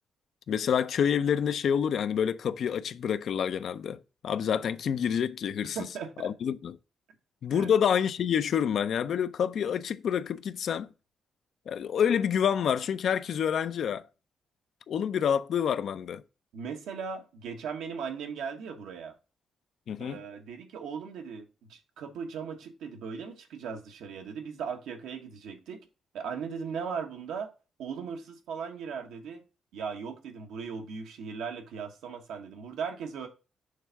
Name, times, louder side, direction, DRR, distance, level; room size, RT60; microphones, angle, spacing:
voice 1, 0.5-5.8 6.2-6.8 7.4-10.9 11.7-14.0 14.9-16.2 19.9-20.2, left 8 dB, 65° left, 0.4 m, -28 dB
voice 2, 5.7-6.1 7.5-7.7 16.5-19.1 20.0-25.8 26.1-27.5 27.8-29.4 29.7-33.3, right 6 dB, 90° right, 1.2 m, -38 dB
6.5 x 3.4 x 5.7 m
cardioid pair, 75°, 0 cm